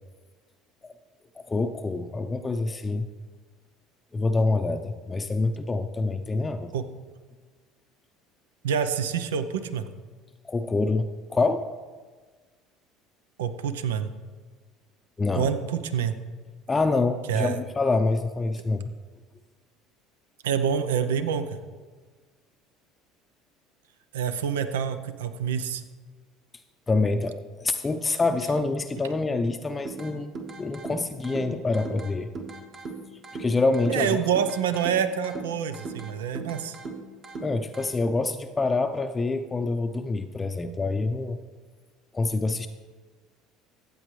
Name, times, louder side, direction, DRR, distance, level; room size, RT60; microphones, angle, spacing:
voice 1, 1.4-3.1 4.1-6.7 10.4-11.7 15.2-15.5 16.7-18.8 26.9-30.3 30.6-32.3 33.3-34.3 37.4-41.4 42.1-42.7, left 3 dB, 25° left, 7 dB, 0.5 m, -26 dB
voice 2, 8.6-9.9 13.4-14.1 15.3-16.1 17.3-17.6 20.4-21.5 24.1-25.8 33.9-36.8, right 8 dB, 85° right, 10 dB, 0.6 m, -27 dB
sound 1, 29.9-37.9, right 3 dB, 45° right, 1.7 m, -40 dB
14.5 x 8.4 x 3.2 m, 1.4 s
hypercardioid pair, 70°, 0 cm